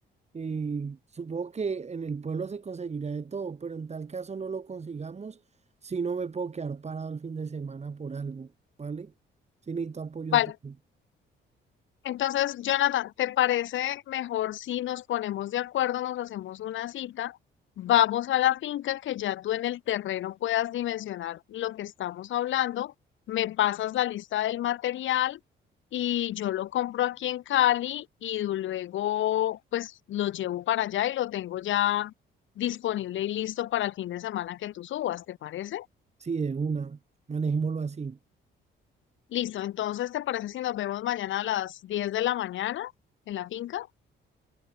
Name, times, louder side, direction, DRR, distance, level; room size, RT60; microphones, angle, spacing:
voice 1, 0.3-5.4 5.8-8.5 8.8-9.1 9.6-10.7 36.2-37.0 37.3-38.2, right 5 dB, 35° right, 2.4 m, -33 dB
voice 2, 12.0-17.3 17.8-22.9 23.3-25.4 25.9-32.1 32.6-35.9 39.3-42.9 43.3-43.9, left 13 dB, 75° left, 2.0 m, -28 dB
cardioid pair, 90°, 20 cm